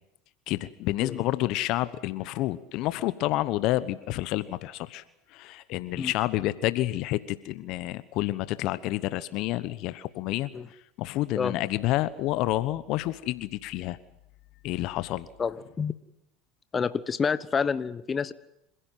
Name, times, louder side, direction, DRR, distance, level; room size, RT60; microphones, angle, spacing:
voice 1, 0.5-5.0 5.3-10.5 11.0-14.0 14.6-15.3, left 16 dB, 60° left, 15 dB, 1.1 m, -29 dB
voice 2, 15.4-15.9 16.7-18.3, left 6 dB, 30° left, 14 dB, 1.2 m, -28 dB
27.0 x 16.0 x 9.3 m, 0.85 s
hypercardioid pair, 85°, 0 cm